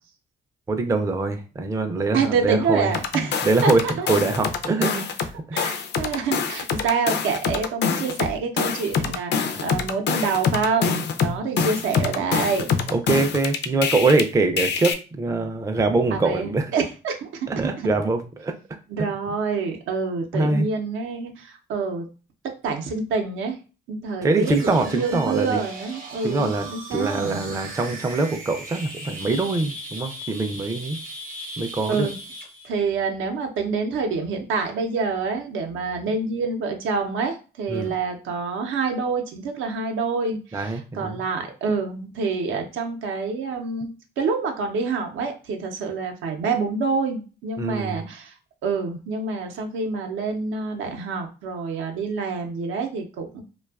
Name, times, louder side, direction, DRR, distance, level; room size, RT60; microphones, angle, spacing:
voice 1, 0.7-3.8 4.1-5.1 9.5-9.6 12.9-16.7 17.5-18.5 20.3-20.7 24.2-25.6 26.2-26.6 26.9-31.0 31.6-32.1 37.7-37.9 40.5-41.2 47.6-48.0, right 3 dB, 15° right, 6 dB, 0.3 m, -23 dB
voice 2, 2.1-4.1 5.5-12.7 16.1-17.9 18.9-22.1 22.6-23.6 23.9-27.5 31.9-32.2 32.6-43.9 44.2-48.3 48.6-53.4, right 4 dB, 80° right, 4 dB, 0.6 m, -27 dB
sound 1, 2.9-5.3 5.6-14.2 14.6-14.9, left 6 dB, 60° left, 0.4 m, -25 dB
sound 2, 24.4-32.7, right 1 dB, 45° right, 0.7 m, -38 dB
2.5 x 2.2 x 2.3 m, 0.34 s
cardioid pair, 90°, 20 cm